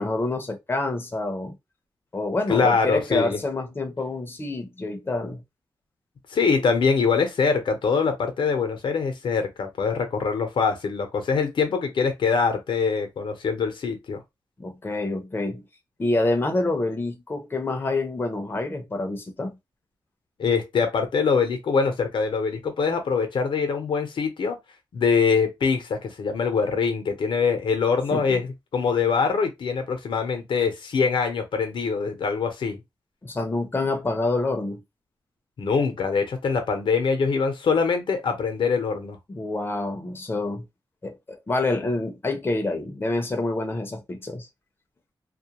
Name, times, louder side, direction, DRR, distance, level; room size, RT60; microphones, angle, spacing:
voice 1, 0.0-1.6 2.1-5.4 14.6-15.6 16.0-19.5 28.1-28.4 33.2-34.8 39.3-40.6 41.0-44.5, left 2 dB, 25° left, 0.6 m, -27 dB
voice 2, 2.5-3.4 6.3-14.2 20.4-24.6 24.9-28.5 28.7-32.8 35.6-39.2, left 5 dB, 85° left, 0.7 m, -23 dB
2.3 x 2.1 x 2.8 m
wide cardioid pair, 120°, 8 cm